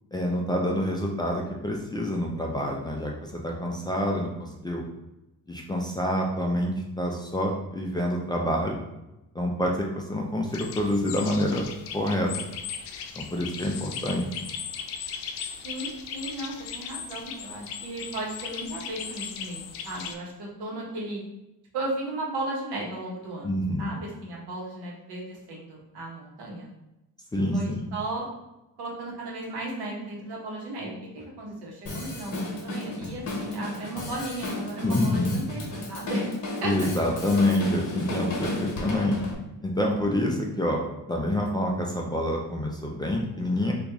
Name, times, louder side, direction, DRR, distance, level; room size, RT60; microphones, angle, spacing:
voice 1, 0.1-4.8 5.5-8.8 9.3-11.6 11.9-12.3 13.1-14.2 23.4-23.9 27.3-27.9 34.8-35.4 36.6-39.2 39.6-40.8 41.1-43.7, left 1 dB, 10° left, -1 dB, 0.3 m, -27 dB
sound 1, 10.5-20.1, left 7 dB, 85° left, 0.5 m, -37 dB
voice 2, 15.6-21.2 21.7-26.7 27.3-28.3 28.8-36.3 36.6-36.7, right 2 dB, 85° right, -3 dB, 1.1 m, -35 dB
Drum kit, 31.9-39.4, left 2 dB, 50° left, 1.0 m, -34 dB
2.9 x 2.5 x 3.5 m, 0.94 s
cardioid pair, 115°, 38 cm